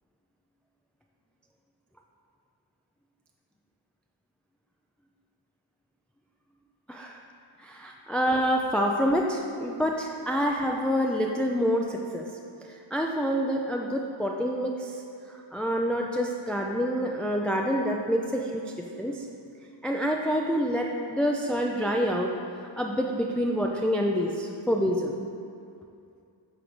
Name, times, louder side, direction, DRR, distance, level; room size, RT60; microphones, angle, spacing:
voice 1, 6.9-7.2 7.6-12.2 12.7-15.0 15.3-19.3 19.8-22.3 22.8-25.2, equal, ahead, 0 dB, 0.4 m, -27 dB
8.0 x 3.9 x 6.1 m, 2.5 s
wide cardioid pair, 55°, 48 cm